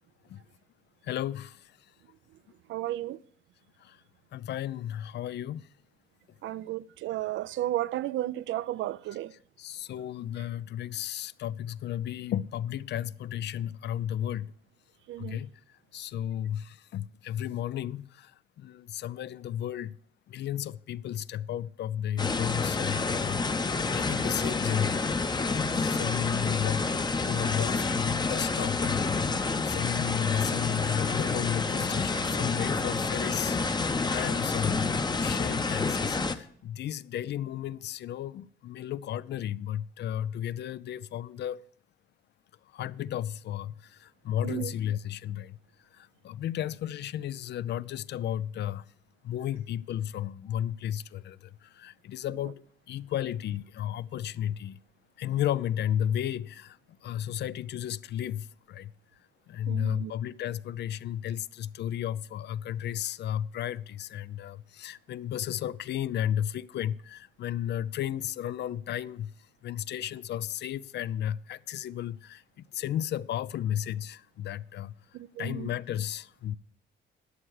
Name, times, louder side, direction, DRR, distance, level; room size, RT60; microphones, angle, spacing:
voice 1, 1.0-1.8 3.8-4.0 4.3-5.7 9.6-14.5 15.2-15.5 15.9-20.0 20.3-26.9 27.3-41.6 42.7-45.6 45.9-48.9 49.2-54.8 55.2-58.9 59.5-69.3 69.6-72.4 72.7-74.9 75.4-76.5, left 10 dB, 60° left, 0.4 m, -33 dB
voice 2, 2.7-3.2 6.4-9.3 15.1-15.4 44.4-44.7 59.7-60.1 75.1-75.7, right 14 dB, 75° right, 0.4 m, -33 dB
sound 1, 22.2-36.4, left 4 dB, 20° left, 0.7 m, -29 dB
11.5 x 7.8 x 4.7 m
cardioid pair, 90°, 20 cm